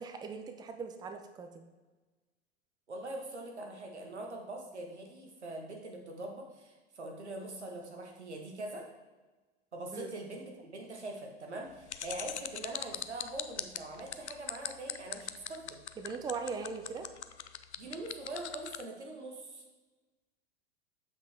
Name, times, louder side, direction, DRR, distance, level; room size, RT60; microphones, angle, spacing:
voice 1, 0.0-1.6 9.9-10.1 16.0-17.1, right 5 dB, 10° right, 7 dB, 0.6 m, -40 dB
voice 2, 2.9-8.8 9.7-15.8 17.8-19.6, right 2 dB, 85° right, 1 dB, 1.4 m, -43 dB
sound 1, 11.9-18.8, left 10 dB, 85° left, 0.5 m, -39 dB
7.2 x 5.8 x 3.5 m, 1.3 s
figure-of-eight pair, 90°, 33 cm